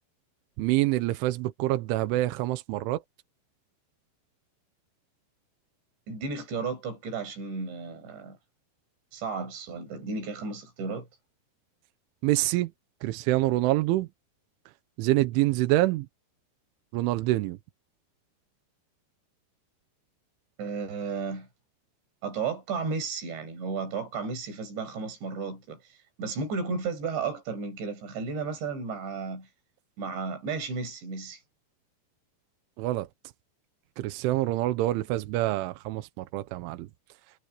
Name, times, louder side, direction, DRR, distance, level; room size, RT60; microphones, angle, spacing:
voice 1, 0.6-3.0 12.2-12.7 13.0-14.1 15.0-16.1 16.9-17.6 32.8-33.1 34.0-36.9, right 17 dB, 85° right, 3.4 m, -26 dB
voice 2, 6.1-8.4 9.1-11.1 20.6-21.5 22.2-29.5 30.0-31.4, right 4 dB, 65° right, 8.9 m, -33 dB
omnidirectional pair, 5.4 m